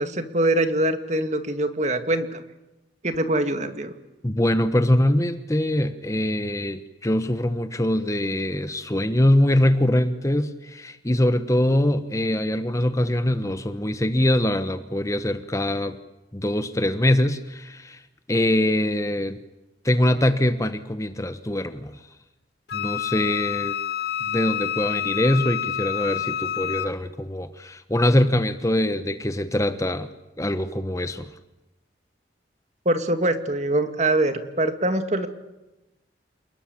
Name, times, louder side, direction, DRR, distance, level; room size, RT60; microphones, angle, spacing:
voice 1, 0.0-2.4 3.0-3.9 32.9-35.3, right 1 dB, 40° right, 8 dB, 2.2 m, -23 dB
voice 2, 4.2-16.0 16.3-18.0 18.3-19.4 19.8-22.0 22.7-23.7 24.2-30.1 30.4-31.3, left 1 dB, 15° left, 10 dB, 1.1 m, -23 dB
Wind instrument woodwind instrument, 22.7-26.9, left 10 dB, 60° left, 1.7 m, -28 dB
29.0 x 20.5 x 8.7 m, 0.99 s
head